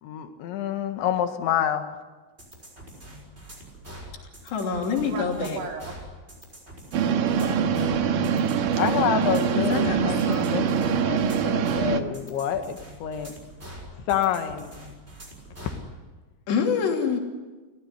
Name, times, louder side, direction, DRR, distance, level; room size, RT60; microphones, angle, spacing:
voice 1, 0.0-1.9 8.8-13.4 14.1-14.7, left 9 dB, 90° left, 7 dB, 4.1 m, -27 dB
sound 1, 2.4-15.8, right 1 dB, 15° right, 6.0 m, -44 dB
voice 2, 4.4-5.6 9.6-10.6 16.5-17.2, left 5 dB, 70° left, 1 dB, 5.2 m, -26 dB
voice 3, 5.0-6.0 7.2-8.3 9.8-10.2, right 4 dB, 80° right, 2 dB, 5.3 m, -38 dB
sound 2, 6.9-12.0, right 7 dB, 65° right, 2.5 m, -24 dB
30.0 x 16.0 x 9.7 m, 1.3 s
omnidirectional pair, 5.2 m